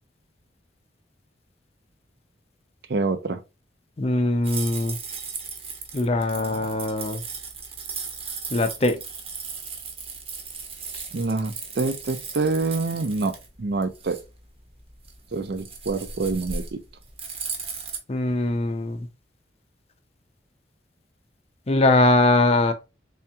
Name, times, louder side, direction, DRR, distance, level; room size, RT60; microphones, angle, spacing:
voice 1, 2.9-3.4 11.1-14.2 15.3-16.8, right 3 dB, 60° right, 0.5 m, -26 dB
voice 2, 4.0-5.0 5.9-7.2 8.5-9.0 10.9-11.0 18.1-19.1 21.7-22.7, left 2 dB, 35° left, 0.5 m, -21 dB
sound 1, 4.4-18.0, right 5 dB, 30° right, 0.8 m, -36 dB
3.5 x 3.4 x 2.8 m
head